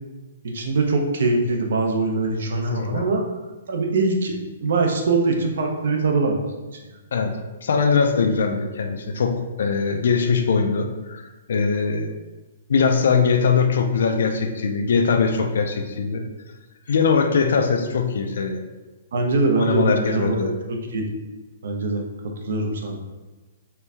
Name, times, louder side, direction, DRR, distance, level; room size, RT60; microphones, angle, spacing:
voice 1, 0.4-3.3 3.7-6.4 19.1-21.1 21.6-22.0 22.4-23.0, right 3 dB, 60° right, 2 dB, 0.7 m, -22 dB
voice 2, 2.6-3.0 7.1-7.3 7.6-12.1 12.7-16.2 16.9-18.6 19.6-20.5, left 5 dB, 65° left, 5 dB, 0.4 m, -21 dB
4.4 x 2.7 x 3.4 m, 1.2 s
hypercardioid pair, 175°, 0 cm